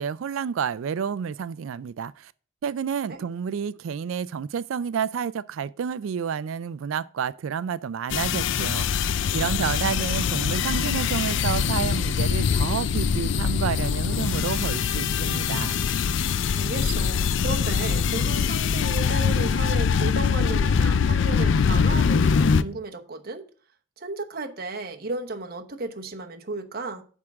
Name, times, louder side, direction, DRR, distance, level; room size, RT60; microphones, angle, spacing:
voice 1, 0.0-2.3 2.6-9.1 9.3-15.8, right 7 dB, 70° right, 0.3 m, -30 dB
sound 1, 8.1-22.6, left 6 dB, 60° left, 0.4 m, -23 dB
voice 2, 16.5-23.4 24.0-27.0, right 2 dB, 45° right, 1.0 m, -34 dB
9.0 x 3.7 x 6.2 m
head